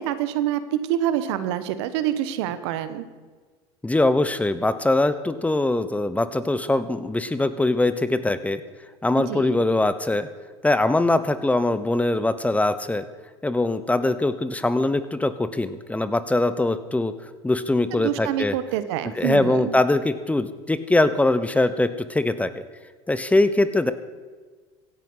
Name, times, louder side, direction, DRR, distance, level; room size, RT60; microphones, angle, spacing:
voice 1, 0.0-3.1 9.2-9.6 17.9-19.7, right 11 dB, 80° right, 12 dB, 1.2 m, -26 dB
voice 2, 3.8-8.6 9.0-10.3 10.6-13.0 13.4-17.1 17.4-18.6 19.2-22.5 23.1-23.9, left 2 dB, 10° left, 13 dB, 1.0 m, -22 dB
16.5 x 11.5 x 5.7 m, 1.5 s
supercardioid pair, 95°, 14 cm